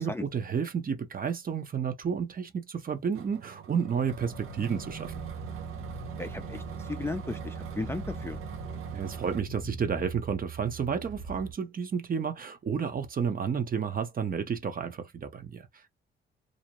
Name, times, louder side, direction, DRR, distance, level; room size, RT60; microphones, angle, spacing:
voice 1, 0.0-5.2 8.9-15.9, right 6 dB, 45° right, 0.8 m, -31 dB
sound 1, 3.1-9.4, right 10 dB, 85° right, 0.6 m, -43 dB
sound 2, 4.1-10.2, left 6 dB, 50° left, 0.7 m, -46 dB
sound 3, 5.1-11.5, right 7 dB, 60° right, 1.5 m, -42 dB
voice 2, 6.2-8.4, left 2 dB, 10° left, 0.4 m, -35 dB
2.6 x 2.1 x 2.9 m
cardioid pair, 90°, 21 cm